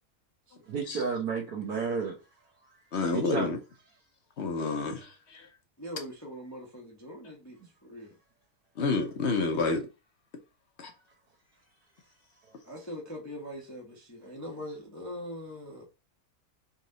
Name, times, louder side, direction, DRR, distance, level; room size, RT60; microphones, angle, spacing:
voice 1, 0.7-2.2 3.1-3.6 7.6-7.7, right 5 dB, 85° right, 1.5 m, -32 dB
voice 2, 2.9-3.6 4.4-5.5 8.8-9.8 10.8-10.9, left 3 dB, 50° left, 1.0 m, -29 dB
voice 3, 5.8-8.2 12.6-15.8, equal, 15° left, 0.9 m, -42 dB
4.2 x 3.2 x 3.8 m
omnidirectional pair, 1.6 m